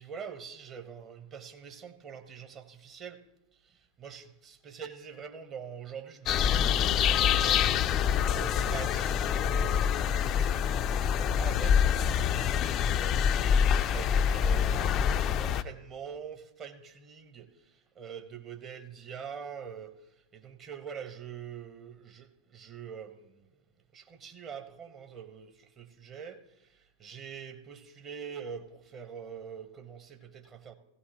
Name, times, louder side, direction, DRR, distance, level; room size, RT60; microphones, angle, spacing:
voice 1, 0.0-3.2 3.5-10.7 11.4-23.5 23.9-30.8, right 7 dB, 30° right, 7 dB, 1.2 m, -45 dB
sound 1, 6.3-15.6, left 8 dB, 35° left, 0.4 m, -26 dB
17.0 x 16.0 x 3.1 m, 0.95 s
figure-of-eight pair, 90°, 0 cm